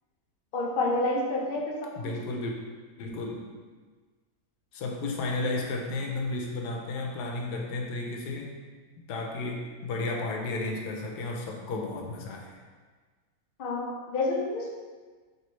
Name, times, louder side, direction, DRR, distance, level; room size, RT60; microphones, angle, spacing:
voice 1, 0.5-2.1 13.6-14.7, left 2 dB, 70° left, -1 dB, 0.5 m, -29 dB
voice 2, 2.0-2.5 3.0-3.4 4.7-8.5 9.1-12.5, left 2 dB, 90° left, 0 dB, 1.2 m, -33 dB
4.3 x 3.1 x 3.1 m, 1.4 s
omnidirectional pair, 1.7 m